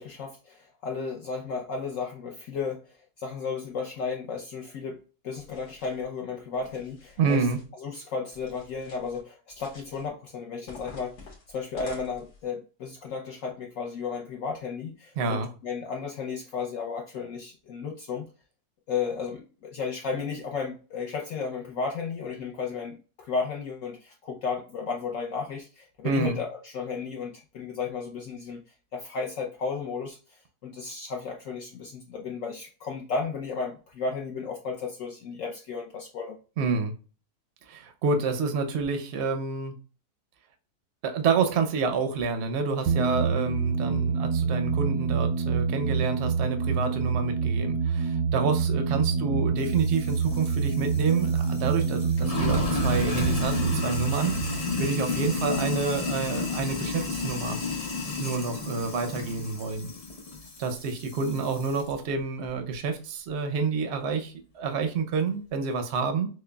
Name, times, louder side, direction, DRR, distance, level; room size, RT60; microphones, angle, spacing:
voice 1, 0.0-7.5 7.8-18.3 18.9-36.4, left 5 dB, 70° left, 0 dB, 0.8 m, -34 dB
sound 1, 5.4-6.0 6.5-7.7 8.3-9.2 9.5-10.1 10.7-12.4, left 3 dB, 85° left, 1.9 m, -49 dB
voice 2, 7.2-7.6 15.2-15.5 26.0-26.4 36.6-36.9 37.7-39.8 41.0-57.6 58.2-59.9 60.6-66.3, right 5 dB, 65° right, 6 dB, 0.7 m, -28 dB
sound 2, 42.9-56.1, right 5 dB, 85° right, 1.2 m, -27 dB
Sink (filling or washing), 49.6-61.9, left 4 dB, 50° left, 0.4 m, -32 dB
6.3 x 2.2 x 2.2 m, 0.37 s
omnidirectional pair, 1.8 m